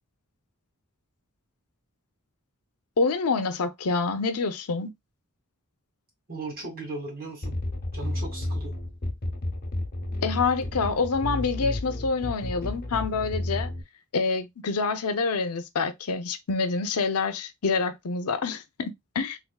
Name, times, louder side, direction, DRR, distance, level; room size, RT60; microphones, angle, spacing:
voice 1, 3.0-4.9 10.2-13.7 14.1-19.4, left 4 dB, 90° left, 0.6 m, -27 dB
voice 2, 6.3-7.6 7.9-8.7, right 3 dB, 45° right, 2.0 m, -37 dB
sound 1, 7.4-13.8, left 1 dB, 45° left, 1.0 m, -32 dB
3.5 x 3.3 x 2.2 m
head